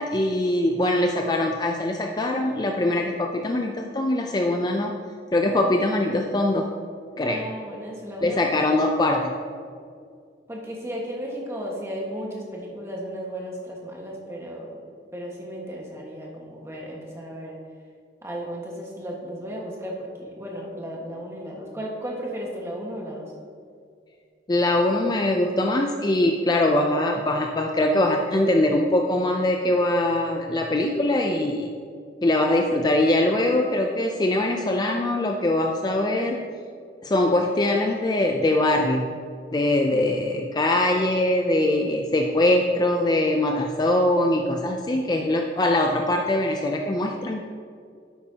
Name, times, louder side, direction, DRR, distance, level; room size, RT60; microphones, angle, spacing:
voice 1, 0.0-4.9 5.3-6.7 7.2-7.4 8.2-9.4 24.5-31.7 32.2-36.4 37.0-39.1 39.5-47.4, left 1 dB, 20° left, 2 dB, 0.4 m, -22 dB
voice 2, 7.2-8.8 10.5-14.8 15.1-17.6 18.2-23.3, equal, 15° right, -2 dB, 1.5 m, -35 dB
10.0 x 8.3 x 2.8 m, 2.2 s
head